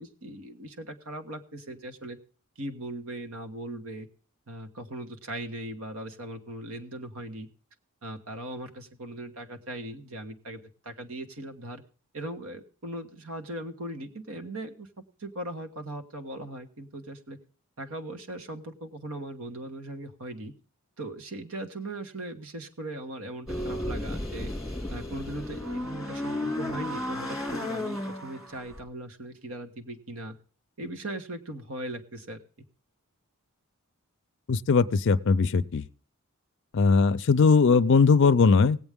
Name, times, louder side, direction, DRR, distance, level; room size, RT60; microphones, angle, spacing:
voice 1, 0.0-2.2 2.6-4.1 4.5-7.5 8.0-11.8 12.1-14.9 15.2-17.4 17.8-20.5 21.0-24.5 24.9-30.3 30.8-32.4, right 1 dB, 65° right, 1.4 m, -39 dB
sound 1, 23.5-28.8, left 1 dB, ahead, 2.1 m, -33 dB
voice 2, 34.5-35.8 36.7-38.8, left 4 dB, 55° left, 0.5 m, -20 dB
18.0 x 8.0 x 3.6 m
head